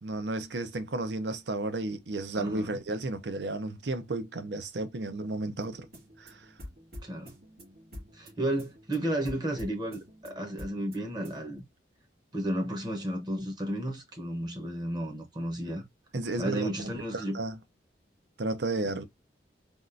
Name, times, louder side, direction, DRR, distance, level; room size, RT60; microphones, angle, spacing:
voice 1, 0.0-5.9 6.2-6.5 16.1-16.7 17.1-17.6 18.4-19.0, right 2 dB, 70° right, 0.6 m, -33 dB
voice 2, 2.3-2.8 7.0-7.4 8.1-11.6 12.3-15.9 16.4-17.4, right 1 dB, 25° right, 0.8 m, -33 dB
sound 1, 5.6-11.6, left 1 dB, 55° right, 1.9 m, -48 dB
3.6 x 2.4 x 2.5 m
head